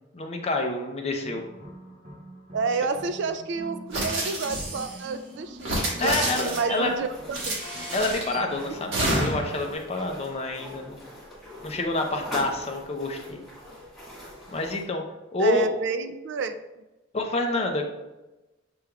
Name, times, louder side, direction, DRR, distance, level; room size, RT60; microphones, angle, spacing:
voice 1, 0.1-1.4 6.0-6.9 7.9-11.0 11.6-13.4 14.5-15.0 15.3-15.7 17.1-17.8, left 2 dB, 35° left, 3 dB, 0.6 m, -28 dB
sound 1, 1.2-9.8, equal, 40° right, 0.9 m, -45 dB
voice 2, 2.5-7.1 7.5-7.6 15.4-16.6, right 4 dB, 65° right, 9 dB, 0.4 m, -30 dB
sound 2, 3.9-5.0 5.6-6.8 7.3-8.4 8.9-9.6, right 1 dB, 85° right, 1.4 m, -28 dB
sound 3, 6.0-14.9, equal, ahead, 1.6 m, -42 dB
6.8 x 3.4 x 2.3 m, 1.0 s
head